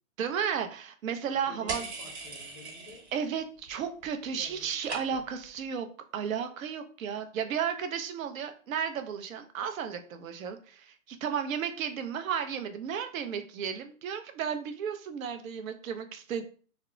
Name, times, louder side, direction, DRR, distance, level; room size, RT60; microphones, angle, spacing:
voice 1, 0.2-1.9 3.1-16.4, right 7 dB, 70° right, 7 dB, 0.6 m, -34 dB
voice 2, 1.5-3.0 4.3-5.2, left 2 dB, 20° left, 1 dB, 0.5 m, -51 dB
sound 1, 1.7-3.3 3.6-4.1 4.4-5.4, right 3 dB, 50° right, 1.0 m, -40 dB
2.1 x 2.1 x 3.7 m, 0.41 s
hypercardioid pair, 140°, 43 cm